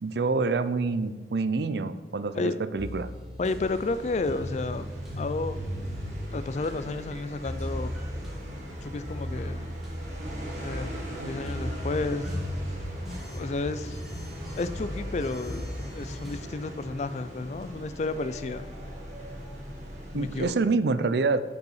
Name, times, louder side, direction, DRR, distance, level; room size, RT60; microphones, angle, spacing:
voice 1, 0.0-3.1 11.2-11.3 20.1-21.4, right 3 dB, 65° right, 14 dB, 0.4 m, -27 dB
sound 1, 2.8-16.4, equal, ahead, 1.5 m, -37 dB
voice 2, 3.4-4.9 5.2-7.9 8.8-9.8 10.4-12.3 13.3-14.0 14.6-15.7 15.9-18.6 20.1-20.5, left 3 dB, 40° left, 13 dB, 0.4 m, -32 dB
sound 2, 3.6-20.5, equal, 40° right, 1.6 m, -41 dB
6.7 x 5.4 x 6.4 m, 1.3 s
head